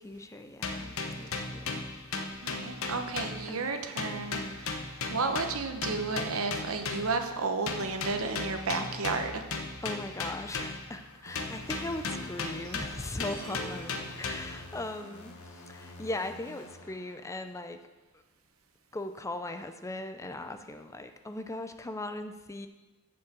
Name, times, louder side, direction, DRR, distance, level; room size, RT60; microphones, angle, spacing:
voice 1, 0.0-1.8 3.5-3.8 9.8-15.3 15.7-17.8 18.9-22.7, left 2 dB, 15° left, 8 dB, 0.5 m, -39 dB
sound 1, 0.6-3.7 4.0-7.2 7.7-11.0 11.3-14.7, left 3 dB, 65° left, 1.0 m, -37 dB
voice 2, 2.4-9.4, right 4 dB, 70° right, 7 dB, 1.0 m, -32 dB
sound 2, 11.3-17.7, left 2 dB, 85° left, 1.4 m, -49 dB
sound 3, 13.2-14.8, right 2 dB, 35° right, 2.6 m, -46 dB
7.5 x 7.2 x 7.4 m, 1.1 s
head